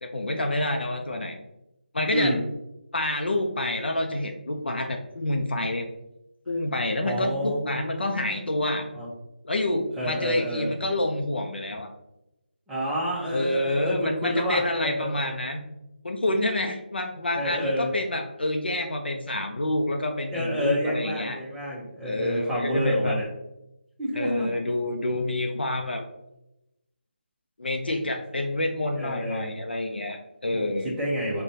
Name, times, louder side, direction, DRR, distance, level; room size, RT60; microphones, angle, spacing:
voice 1, 0.0-1.4 1.9-2.3 2.9-5.9 6.5-8.9 9.4-11.9 13.3-15.6 16.0-21.4 22.0-23.2 24.1-26.0 27.6-31.0, left 1 dB, 80° left, 3 dB, 0.5 m, -28 dB
voice 2, 7.0-9.1 10.0-10.7 12.7-15.3 17.3-17.9 20.3-23.3 24.0-24.5 29.0-29.6 30.5-31.4, equal, 5° right, -6 dB, 0.6 m, -29 dB
4.9 x 2.2 x 2.6 m, 0.90 s
figure-of-eight pair, 160°, 6 cm